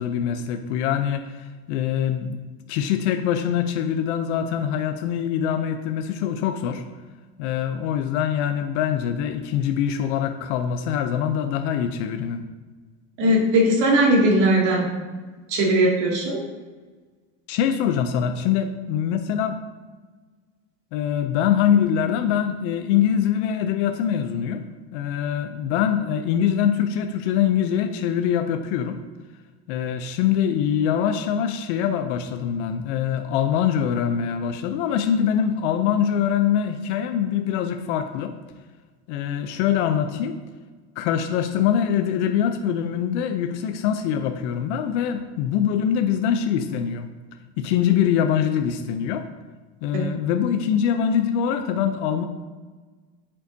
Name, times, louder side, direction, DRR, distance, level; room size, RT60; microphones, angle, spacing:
voice 1, 0.0-2.4 2.7-6.8 7.4-12.4 17.5-19.6 20.9-24.7 24.9-29.0 29.7-38.3 39.1-40.4 41.0-47.1 47.6-49.3 49.8-52.2, left 9 dB, 75° left, 7 dB, 0.7 m, -23 dB
voice 2, 13.2-14.9 15.5-16.4 49.9-50.0, right 1 dB, 55° right, -2 dB, 2.5 m, -19 dB
8.2 x 7.6 x 2.8 m, 1.4 s
supercardioid pair, 120°, 36 cm